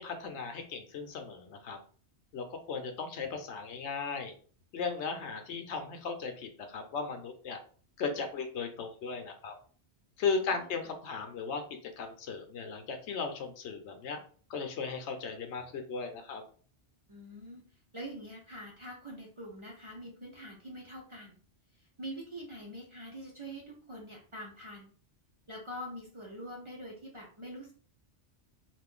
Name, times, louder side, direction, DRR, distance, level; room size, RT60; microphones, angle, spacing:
voice 1, 0.0-1.8 2.3-4.3 4.7-7.6 8.0-9.5 10.2-11.6 12.0-14.2 14.5-16.4, left 5 dB, 75° left, 6 dB, 0.9 m, -36 dB
voice 2, 10.3-10.9 17.1-17.6 17.9-21.4 21.8-24.9 25.5-27.7, equal, 30° right, -2 dB, 0.6 m, -45 dB
2.5 x 2.4 x 3.7 m, 0.43 s
omnidirectional pair, 1.2 m